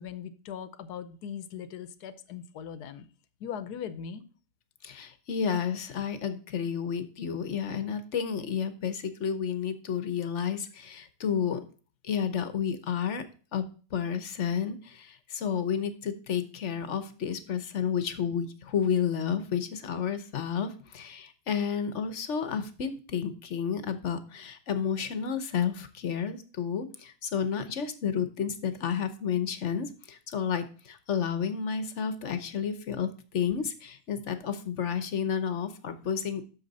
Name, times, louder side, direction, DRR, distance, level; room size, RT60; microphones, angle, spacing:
voice 1, 0.0-3.1 3.4-4.2, left 8 dB, 80° left, 1.3 m, -39 dB
voice 2, 4.8-11.6 12.0-13.2 13.5-36.4, left 7 dB, 50° left, 1.1 m, -31 dB
8.2 x 6.7 x 4.1 m
omnidirectional pair, 1.7 m